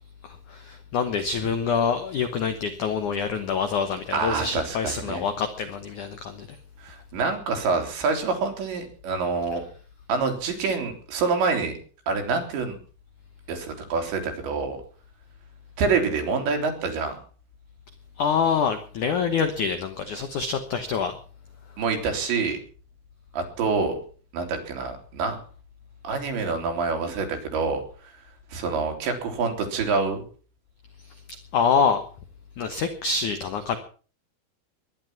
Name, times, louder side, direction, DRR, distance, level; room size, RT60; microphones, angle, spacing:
voice 1, 0.2-6.5 18.2-21.2 31.5-32.0 32.6-33.8, left 6 dB, 75° left, 9 dB, 1.8 m, -26 dB
voice 2, 4.1-5.2 6.8-9.7 10.1-11.8 12.1-12.8 13.5-14.8 15.8-17.2 21.8-22.6 23.3-24.0 24.3-25.4 26.0-27.8 28.5-30.2, right 4 dB, 70° right, 4 dB, 5.3 m, -26 dB
21.5 x 11.0 x 5.9 m, 0.41 s
omnidirectional pair, 5.4 m